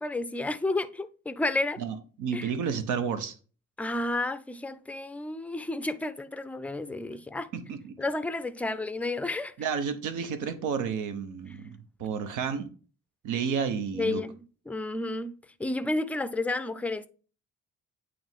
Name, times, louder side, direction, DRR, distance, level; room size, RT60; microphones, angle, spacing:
voice 1, 0.0-1.8 2.3-2.5 3.8-7.5 8.0-9.5 13.9-17.1, left 2 dB, 5° left, 0.4 m, -31 dB
voice 2, 1.8-3.3 7.5-7.9 9.6-12.7 13.2-14.2, right 6 dB, 85° right, 0.9 m, -31 dB
8.6 x 3.1 x 3.5 m
cardioid pair, 90°, 30 cm